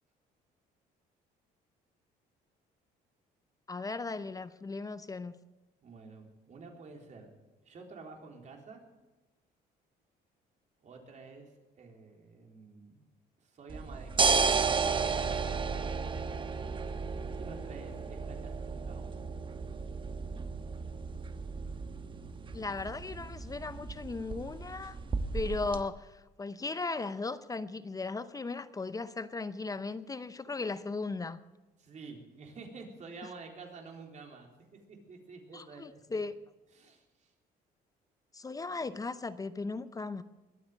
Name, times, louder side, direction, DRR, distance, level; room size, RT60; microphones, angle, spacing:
voice 1, 3.7-5.3 22.5-25.0 25.3-31.4 35.5-36.3 38.3-40.2, left 3 dB, 20° left, 13 dB, 0.7 m, -37 dB
voice 2, 5.8-7.3 7.6-8.8 10.8-13.0 13.4-15.3 17.3-19.1 31.8-34.5 34.9-35.9 36.7-37.3, right 4 dB, 45° right, 2 dB, 3.8 m, -49 dB
sound 1, 13.7-25.8, right 5 dB, 30° right, 1.1 m, -33 dB
22.0 x 8.6 x 7.4 m, 1.1 s
cardioid pair, 110°, 17 cm